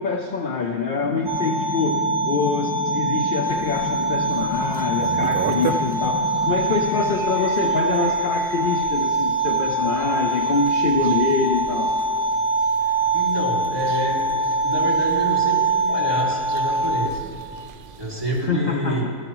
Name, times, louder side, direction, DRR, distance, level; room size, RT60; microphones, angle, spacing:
voice 1, 0.0-12.0 18.4-19.1, left 5 dB, 65° left, 4 dB, 0.5 m, -25 dB
sound 1, 1.0-7.2, left 5 dB, 80° left, 1.2 m, -32 dB
sound 2, 1.3-17.1, right 3 dB, 40° right, 1.6 m, -23 dB
sound 3, 3.5-18.5, right 6 dB, 60° right, 0.5 m, -38 dB
voice 2, 12.8-17.2 18.0-19.0, right 1 dB, 15° right, -5 dB, 2.1 m, -28 dB
15.0 x 11.0 x 3.0 m, 2.4 s
omnidirectional pair, 1.4 m